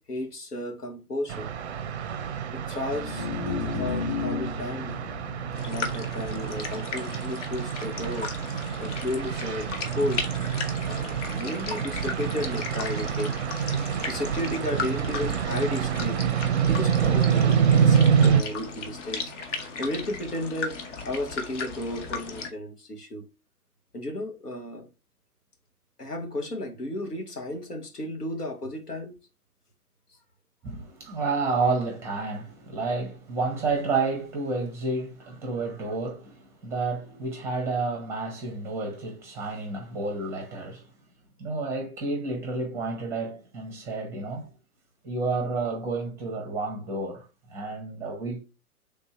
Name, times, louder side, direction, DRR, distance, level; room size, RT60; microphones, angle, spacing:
voice 1, 0.0-1.5 2.5-3.3 3.8-5.0 5.7-8.3 8.8-9.7 10.0-10.3 10.9-13.4 13.8-16.2 16.7-19.3 19.8-23.2 23.9-24.9 26.0-29.1, left 1 dB, 90° left, 1.2 m, -33 dB
sound 1, 1.3-18.4, right 7 dB, 50° right, 0.5 m, -27 dB
sound 2, 2.8-9.2, left 5 dB, 15° left, 1.0 m, -36 dB
sound 3, 5.5-22.5, left 4 dB, 50° left, 0.9 m, -36 dB
voice 2, 30.6-40.9 41.4-44.5 45.0-47.2 47.5-48.4, right 3 dB, 5° right, 0.6 m, -30 dB
3.5 x 2.7 x 4.5 m
figure-of-eight pair, 120°, 45 cm